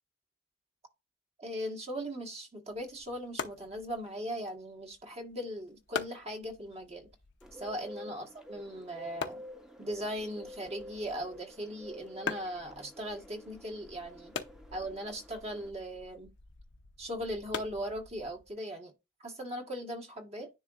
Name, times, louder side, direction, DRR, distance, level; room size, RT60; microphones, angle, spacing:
voice 1, 1.4-7.1 7.6-9.4 9.8-14.3 14.7-16.3 17.0-18.9 19.2-20.5, equal, 35° right, 1.5 m, -39 dB
sound 1, 2.7-18.5, left 5 dB, 75° left, 0.8 m, -45 dB
Bird, 7.4-15.7, equal, 5° right, 0.9 m, -50 dB
10.0 x 3.8 x 2.5 m
head